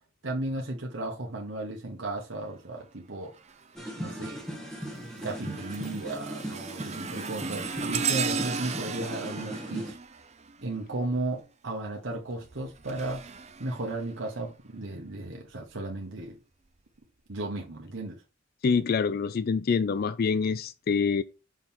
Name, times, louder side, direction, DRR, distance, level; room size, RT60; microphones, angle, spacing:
voice 1, 0.2-3.3 4.0-4.4 5.2-10.0 10.6-13.2 13.6-16.4 17.3-18.2, right 2 dB, 75° right, 1.3 m, -35 dB
sound 1, 3.4-3.7 4.2-11.0 12.3-14.5 15.1-15.3 16.2-16.3, right 5 dB, 35° right, 0.6 m, -36 dB
sound 2, 3.7-9.9, equal, 5° left, 1.5 m, -38 dB
voice 2, 18.6-21.2, left 5 dB, 50° left, 0.4 m, -26 dB
6.2 x 3.7 x 4.3 m
head